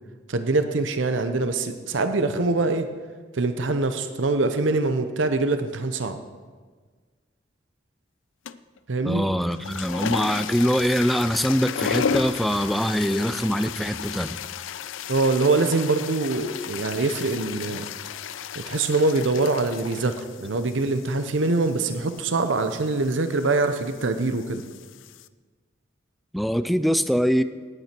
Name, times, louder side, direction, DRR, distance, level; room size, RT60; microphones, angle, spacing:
voice 1, 0.3-2.9 3.3-6.2 8.9-9.3 15.1-17.9 18.6-24.6, right 3 dB, 80° right, 9 dB, 0.8 m, -24 dB
sound 1, 8.5-8.8 9.5-25.3, left 7 dB, 90° left, 0.4 m, -34 dB
voice 2, 9.0-14.4 26.3-27.4, equal, ahead, 12 dB, 0.4 m, -23 dB
17.5 x 8.9 x 4.5 m, 1.5 s
head